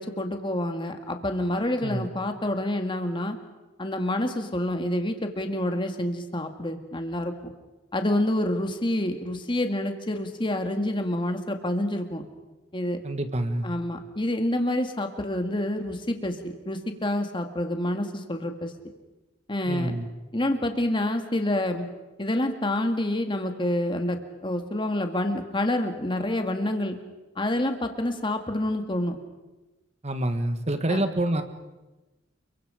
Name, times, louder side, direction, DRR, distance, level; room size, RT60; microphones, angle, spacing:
voice 1, 0.0-3.4 3.8-7.5 7.9-12.2 12.7-13.0 13.6-18.7 19.5-19.9 20.3-21.9 22.2-27.0 27.4-29.2 30.9-31.0, left 1 dB, 25° left, 5 dB, 2.0 m, -28 dB
voice 2, 13.0-13.7 19.7-20.1 30.0-31.4, right 1 dB, 35° right, 9 dB, 1.6 m, -27 dB
29.5 x 23.5 x 5.1 m, 1.1 s
head